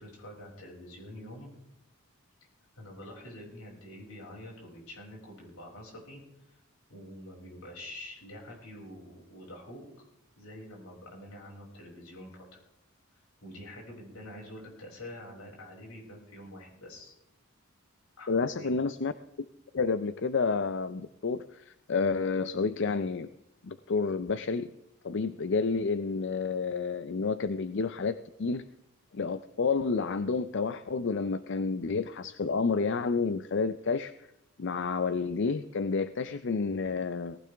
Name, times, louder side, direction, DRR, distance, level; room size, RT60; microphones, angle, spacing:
voice 1, 0.0-1.5 2.7-6.6 6.9-9.8 10.4-12.6 13.4-17.1 18.2-18.8, left 1 dB, 80° left, -2 dB, 6.2 m, -46 dB
voice 2, 18.3-19.1 19.7-23.3 23.6-24.7 25.0-28.6 29.1-34.1 34.6-37.4, left 4 dB, 55° left, 13 dB, 0.5 m, -30 dB
18.5 x 15.5 x 3.5 m, 0.83 s
head